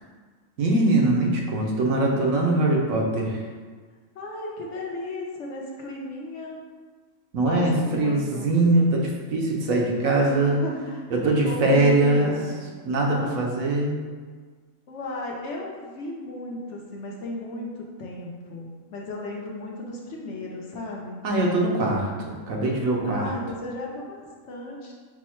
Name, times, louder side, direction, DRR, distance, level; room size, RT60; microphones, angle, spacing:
voice 1, 0.6-3.4 7.3-10.6 11.1-12.4 12.8-14.0 21.2-23.3, right 2 dB, 80° right, -1 dB, 1.2 m, -22 dB
voice 2, 4.1-6.6 7.4-8.5 10.2-11.0 11.4-12.6 13.0-13.5 14.9-17.7 18.0-21.2 23.1-24.2 24.5-24.9, left 1 dB, 65° left, -1 dB, 0.9 m, -34 dB
4.6 x 2.1 x 4.3 m, 1.5 s
omnidirectional pair, 1.4 m